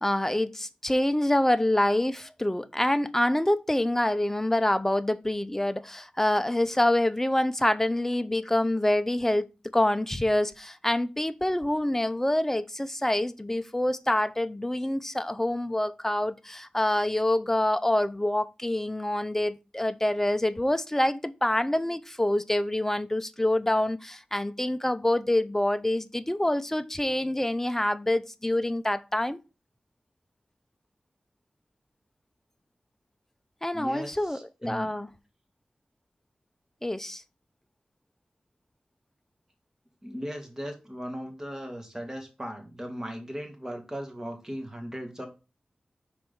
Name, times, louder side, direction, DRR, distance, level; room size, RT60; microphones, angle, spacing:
voice 1, 0.0-9.5 9.7-29.4 33.6-35.1 36.8-37.2, left 1 dB, 15° left, 0.8 m, -26 dB
voice 2, 33.7-34.9 40.0-45.3, equal, 20° right, 2.5 m, -37 dB
6.2 x 4.5 x 5.4 m
wide cardioid pair, 60°, 3 cm